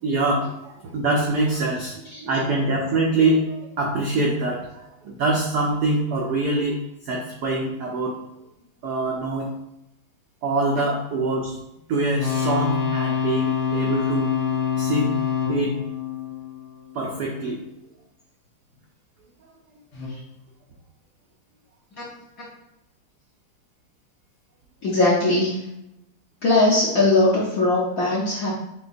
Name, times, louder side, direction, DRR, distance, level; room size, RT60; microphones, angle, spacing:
voice 1, 0.0-6.8 7.0-8.1 8.8-9.5 10.4-11.6 11.9-14.3 14.8-15.2 15.5-15.8 16.9-17.6, right 2 dB, 85° right, -1 dB, 0.8 m, -24 dB
sound 1, 12.1-17.1 19.9-20.1, left 7 dB, 85° left, 2.2 m, -26 dB
voice 2, 24.8-25.6 26.4-28.5, left 2 dB, 60° left, -6 dB, 0.9 m, -19 dB
6.7 x 2.3 x 2.5 m, 0.85 s
omnidirectional pair, 2.4 m